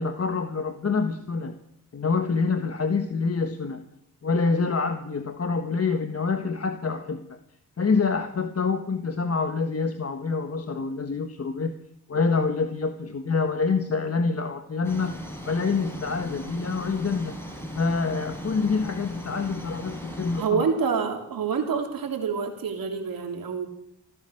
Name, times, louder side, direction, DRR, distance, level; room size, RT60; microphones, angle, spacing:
voice 1, 0.0-1.6 1.9-3.8 4.2-7.4 7.8-11.7 12.1-15.2 15.4-17.4 17.7-20.7, left 4 dB, 45° left, 7 dB, 1.5 m, -26 dB
sound 1, 14.8-20.5, equal, 5° left, 5.2 m, -38 dB
voice 2, 20.4-23.7, right 6 dB, 75° right, 2 dB, 3.4 m, -27 dB
15.5 x 13.0 x 6.5 m, 0.76 s
cardioid pair, 60°, 35 cm